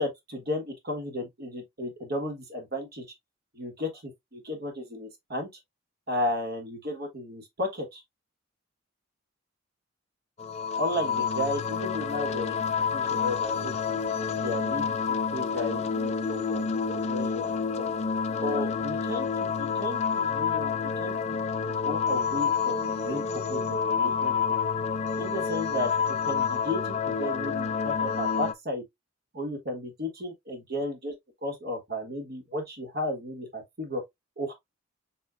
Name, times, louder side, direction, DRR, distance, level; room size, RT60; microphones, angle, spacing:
voice 1, 0.0-3.1 3.5-5.5 6.1-8.0 10.7-14.0 14.3-16.6 16.9-17.9 18.4-21.4 21.7-24.3 25.1-28.8 29.3-31.1 31.4-34.0 34.4-34.5, left 1 dB, 50° right, 1.5 m, -34 dB
sound 1, 10.4-28.5, left 6 dB, 30° left, 0.4 m, -28 dB
7.0 x 2.7 x 2.5 m
head